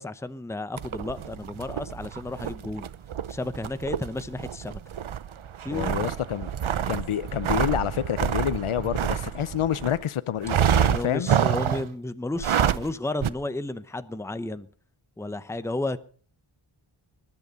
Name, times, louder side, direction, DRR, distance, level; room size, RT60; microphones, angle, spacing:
voice 1, 0.0-2.9 3.3-4.8 5.6-6.0 10.9-14.7 15.2-16.0, left 2 dB, 5° left, 0.8 m, -32 dB
sound 1, 0.8-10.0 10.4-11.9 12.3-12.9 13.2-13.3, right 9 dB, 75° right, 0.8 m, -27 dB
voice 2, 5.7-6.5 6.9-11.3, left 10 dB, 85° left, 0.7 m, -28 dB
20.0 x 11.0 x 5.2 m
wide cardioid pair, 70°, 49 cm